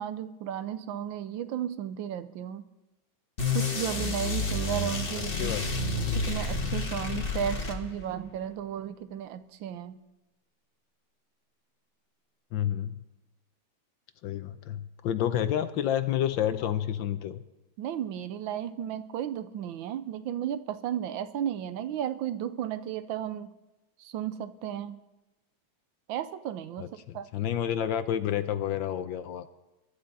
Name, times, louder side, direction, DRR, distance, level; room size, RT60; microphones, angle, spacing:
voice 1, 0.0-2.6 3.5-5.6 6.0-10.0 17.8-23.5 24.0-25.0 26.1-26.9 27.1-27.3, right 10 dB, 75° right, 12 dB, 1.4 m, -34 dB
sound 1, 3.4-8.2, left 3 dB, 30° left, 1.5 m, -30 dB
voice 2, 5.1-5.7 12.5-12.9 14.2-17.4 26.8-29.5, left 10 dB, 75° left, 11 dB, 1.3 m, -30 dB
23.0 x 11.0 x 4.1 m, 1.0 s
omnidirectional pair, 2.2 m